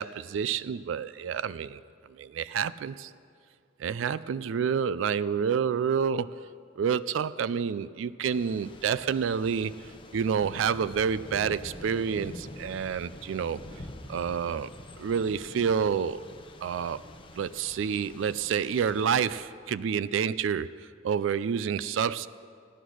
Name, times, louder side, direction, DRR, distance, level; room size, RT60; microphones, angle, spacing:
voice 1, 0.0-1.8 2.2-3.1 3.8-6.5 6.8-9.7 10.1-13.6 14.1-14.7 15.0-16.3 16.6-17.0 17.4-22.3, right 7 dB, 80° right, 0.3 m, -28 dB
Thunder / Rain, 8.3-19.4, left 1 dB, 30° left, 0.8 m, -46 dB
16.0 x 10.0 x 6.2 m
head